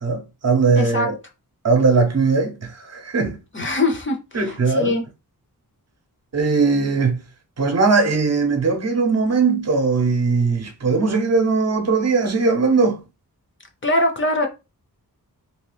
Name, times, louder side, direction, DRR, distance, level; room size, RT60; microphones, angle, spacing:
voice 1, 0.0-1.2 1.6-3.4 4.3-4.9 6.3-7.2 7.6-13.0, right 4 dB, 45° right, 0.6 m, -19 dB
voice 2, 0.7-1.1 3.5-5.0 13.8-14.5, left 2 dB, 35° left, 0.5 m, -22 dB
2.8 x 2.3 x 3.2 m
wide cardioid pair, 130°, 36 cm